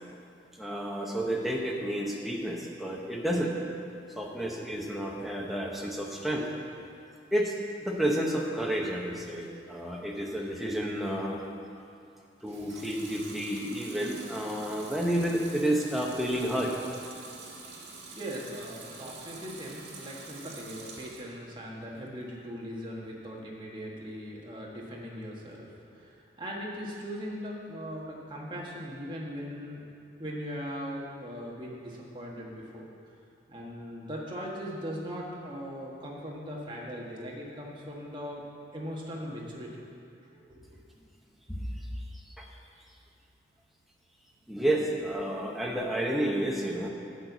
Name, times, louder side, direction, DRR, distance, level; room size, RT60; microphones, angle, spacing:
voice 1, 0.6-3.5 4.2-6.4 7.3-7.5 7.8-11.4 12.4-16.7 41.5-41.6 42.4-42.5 44.5-46.9, right 1 dB, ahead, -2 dB, 0.9 m, -30 dB
Water tap faucet / Sink (filling or washing) / Liquid, 12.4-21.3 21.7-22.5, right 4 dB, 75° right, 1.6 m, -46 dB
voice 2, 18.1-29.8 30.2-32.9 33.5-38.4 38.7-39.7 40.3-40.8, equal, 25° right, -4 dB, 1.5 m, -39 dB
11.5 x 4.5 x 8.0 m, 2.7 s
head